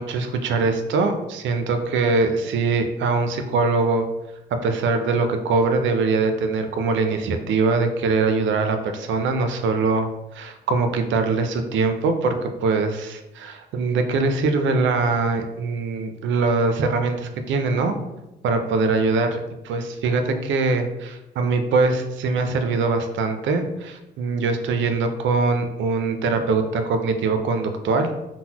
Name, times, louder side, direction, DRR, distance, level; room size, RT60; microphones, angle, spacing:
voice 1, 0.0-4.1 4.6-18.0 18.4-28.1, right 3 dB, 70° right, 7 dB, 0.5 m, -22 dB
3.8 x 2.1 x 2.8 m, 0.96 s
cardioid pair, 90°, 20 cm